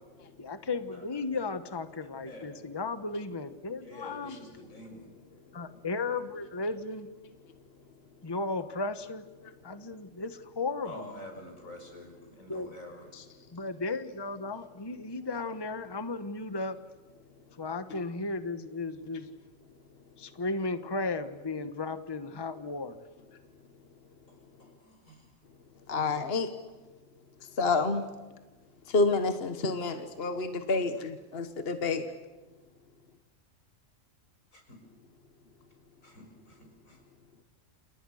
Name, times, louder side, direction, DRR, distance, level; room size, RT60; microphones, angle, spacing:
voice 1, 0.4-4.4 5.5-7.1 8.2-9.2 9.6-11.1 12.5-12.7 13.5-16.8 17.6-19.3 20.2-23.0, left 3 dB, 20° left, 10 dB, 1.2 m, -35 dB
voice 2, 2.2-2.6 3.8-5.1 10.9-13.1 24.6-25.2 34.7-34.8 36.0-36.6 36.9-37.0, left 1 dB, 90° left, 3 dB, 6.9 m, -47 dB
voice 3, 25.9-26.5 27.6-28.0 28.9-32.0, left 3 dB, 50° left, 8 dB, 1.6 m, -28 dB
29.0 x 28.5 x 6.5 m, 1.2 s
omnidirectional pair, 1.4 m